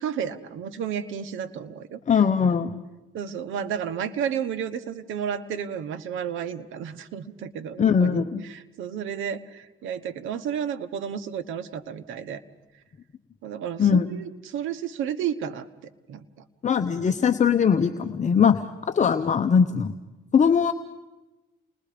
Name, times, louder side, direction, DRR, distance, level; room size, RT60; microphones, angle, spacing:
voice 1, 0.0-2.0 3.1-12.4 13.4-15.7 16.1-16.2, right 8 dB, 85° right, 10 dB, 1.2 m, -32 dB
voice 2, 2.1-2.8 7.8-8.4 13.8-14.1 16.6-19.9 20.3-20.7, left 6 dB, 35° left, 7 dB, 0.9 m, -21 dB
29.5 x 21.0 x 5.1 m, 1.1 s
cardioid pair, 90°, 20 cm